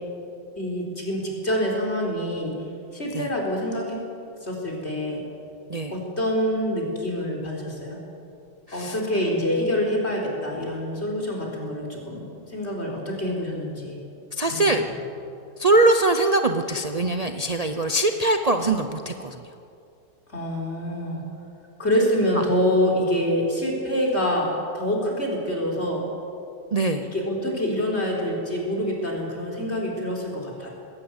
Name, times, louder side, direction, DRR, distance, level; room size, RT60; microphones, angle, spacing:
voice 1, 0.6-2.5 2.9-4.0 4.4-5.2 5.9-8.0 8.7-14.0 14.5-14.9 20.3-21.2 21.8-26.0 27.0-30.7, equal, 35° left, -1 dB, 4.5 m, -26 dB
voice 2, 14.3-14.8 15.6-19.4 26.7-27.0, right 2 dB, 65° right, 6 dB, 0.3 m, -22 dB
20.0 x 17.5 x 8.1 m, 2.6 s
omnidirectional pair, 1.9 m